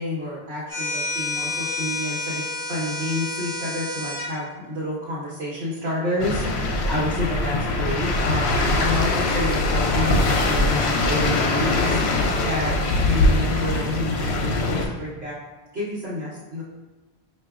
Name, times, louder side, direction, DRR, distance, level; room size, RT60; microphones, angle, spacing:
voice 1, 0.0-12.0 12.4-15.4 15.7-16.6, left 1 dB, 70° right, -8 dB, 1.2 m, -29 dB
sound 1, 0.7-4.3, left 3 dB, 20° right, 1.6 m, -29 dB
sound 2, 6.2-14.9, left 2 dB, 75° left, 0.8 m, -22 dB
5.6 x 2.7 x 2.3 m, 1.1 s
omnidirectional pair, 1.1 m